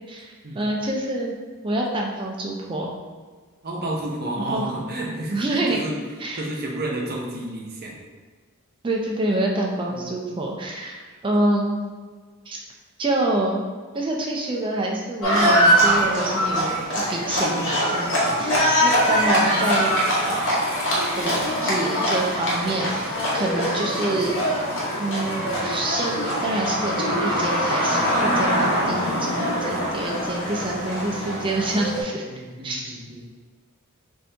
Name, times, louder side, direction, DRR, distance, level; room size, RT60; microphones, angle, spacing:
voice 1, 0.1-1.4 1.6-2.9 4.5-4.6 5.3-5.8 6.2-6.4 8.8-11.8 12.5-12.6 13.0-13.6 13.9-16.8 17.1-19.9 20.2-20.6 21.2-24.4 25.0-33.0, right 1 dB, 20° right, -1 dB, 0.4 m, -27 dB
voice 2, 3.6-6.0 6.4-8.0 9.9-10.1 18.2-19.1 19.4-19.5 32.2-33.2, right 1 dB, 45° right, -2 dB, 0.7 m, -32 dB
Livestock farm animals working animals, 15.2-32.0, equal, 60° left, 1.1 m, -23 dB
4.1 x 2.7 x 3.3 m, 1.5 s
head